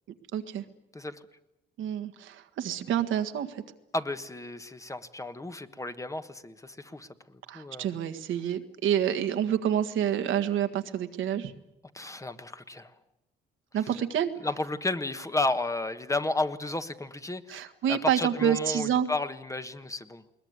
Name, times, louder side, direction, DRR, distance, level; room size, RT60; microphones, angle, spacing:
voice 1, 0.3-0.6 1.8-3.6 7.5-11.5 13.7-14.3 17.5-19.1, right 9 dB, 80° right, 8 dB, 1.7 m, -28 dB
voice 2, 3.9-7.9 11.9-12.9 14.4-20.2, left 2 dB, 15° left, 10 dB, 1.3 m, -33 dB
21.5 x 20.5 x 9.6 m, 0.92 s
cardioid pair, 90°, 20 cm